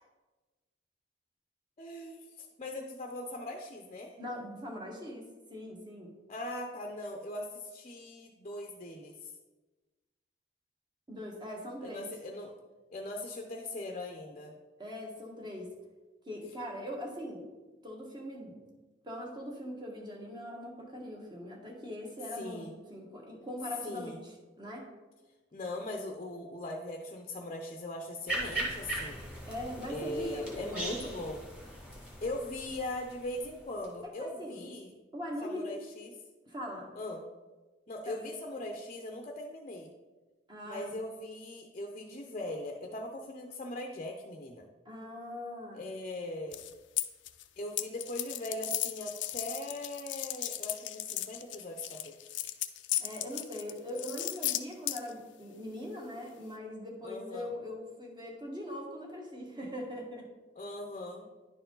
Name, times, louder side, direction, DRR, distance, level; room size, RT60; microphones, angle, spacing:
voice 1, 1.8-4.2 6.3-9.3 11.8-12.5 12.9-14.5 22.3-22.8 23.8-24.2 25.5-29.2 29.9-31.4 32.2-34.9 35.4-36.2 36.9-37.3 37.9-39.9 40.6-44.6 45.7-46.6 47.6-52.2 57.0-57.5 60.6-61.3, left 1 dB, 35° left, 2 dB, 0.7 m, -40 dB
voice 2, 4.2-5.2 5.5-6.1 11.1-12.1 14.8-15.7 16.2-17.5 17.8-18.7 19.0-24.9 29.5-31.3 34.0-34.7 35.1-35.7 36.5-36.9 38.0-38.2 40.5-40.9 44.8-45.9 53.0-60.3, left 1 dB, 25° right, 0 dB, 1.5 m, -41 dB
sound 1, 28.3-33.9, right 2 dB, 5° right, 2.0 m, -39 dB
sound 2, 46.5-47.4 47.8-55.1, left 14 dB, 85° left, 0.5 m, -35 dB
10.5 x 4.7 x 3.8 m, 1.2 s
head